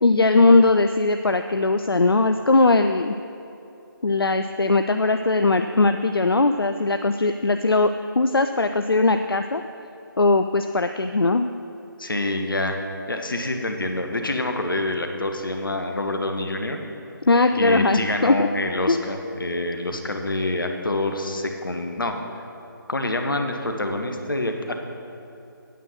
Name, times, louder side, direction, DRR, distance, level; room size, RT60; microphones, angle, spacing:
voice 1, 0.0-3.2 4.0-7.9 8.2-9.6 10.2-11.5 17.3-18.5 18.9-19.0, left 3 dB, 85° left, 7 dB, 0.4 m, -19 dB
voice 2, 12.0-12.8 13.1-16.8 17.5-22.1 22.9-24.8, left 2 dB, 65° left, 5 dB, 1.2 m, -26 dB
9.2 x 7.4 x 6.4 m, 2.7 s
figure-of-eight pair, 150°, 12 cm